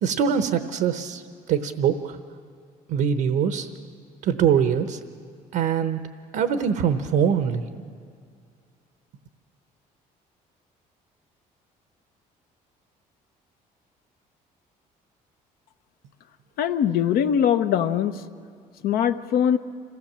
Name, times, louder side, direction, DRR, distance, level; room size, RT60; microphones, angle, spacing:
voice 1, 0.0-2.2 2.9-3.7 4.2-5.0 5.5-6.0 6.3-7.8, right 7 dB, 75° right, 9 dB, 0.9 m, -23 dB
voice 2, 16.6-18.1 18.8-19.6, left 9 dB, 75° left, 9 dB, 0.9 m, -21 dB
26.0 x 16.5 x 7.3 m, 2.2 s
cardioid pair, 110°, 15 cm